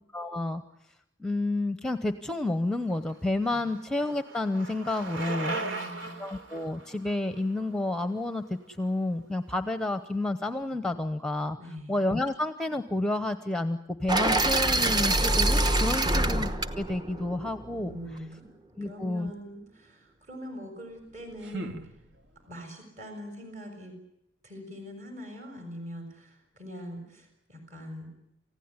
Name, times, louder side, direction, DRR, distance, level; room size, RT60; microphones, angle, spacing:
voice 1, 0.1-0.6 1.2-5.6 6.2-11.6 11.9-16.5 16.8-18.0 18.8-19.3, left 2 dB, 5° left, 10 dB, 0.9 m, -30 dB
Bicycle, 2.9-8.9, right 2 dB, 85° right, 3.6 m, -39 dB
voice 2, 5.5-6.2 11.6-12.0 17.8-18.5 18.8-21.8 22.4-24.0 24.4-28.1, equal, 40° right, 4 dB, 6.5 m, -43 dB
sound 1, 14.1-18.1, right 2 dB, 25° right, 1.1 m, -25 dB
sound 2, 20.9-22.6, right 2 dB, 70° right, 2.1 m, -42 dB
28.5 x 16.0 x 9.6 m, 0.84 s
head